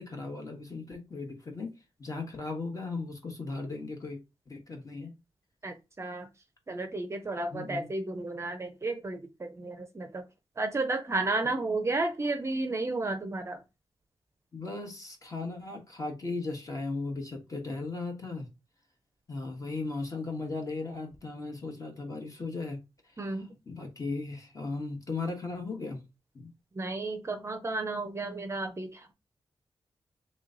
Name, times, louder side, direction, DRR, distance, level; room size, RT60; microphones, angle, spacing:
voice 1, 0.0-1.7 2.0-4.2 4.5-5.1 7.5-7.9 14.5-18.5 19.3-22.8 23.2-26.0 26.3-26.5, left 3 dB, 35° left, 2 dB, 1.2 m, -37 dB
voice 2, 5.6-6.3 6.7-10.2 10.6-13.6 23.2-23.5 26.8-29.1, right 2 dB, 30° right, 6 dB, 0.5 m, -32 dB
3.2 x 3.0 x 3.8 m, 0.25 s
wide cardioid pair, 145°, 10 cm